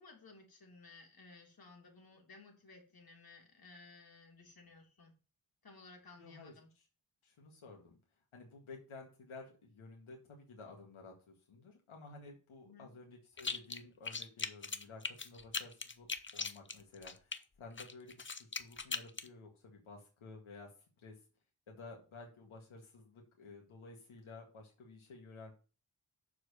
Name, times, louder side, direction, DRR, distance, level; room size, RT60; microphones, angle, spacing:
voice 1, 0.0-5.1 5.6-6.7 12.6-12.9, left 3 dB, 45° left, 1 dB, 3.0 m, -57 dB
voice 2, 6.2-6.9 7.2-8.0 8.3-20.7 21.0-21.2 21.7-25.5, left 3 dB, 80° left, 0 dB, 2.0 m, -53 dB
sound 1, 13.4-13.8 14.0-17.4 17.8-19.3, left 4 dB, 25° left, 0.8 m, -40 dB
6.5 x 4.8 x 6.8 m, 0.35 s
cardioid pair, 65°, 48 cm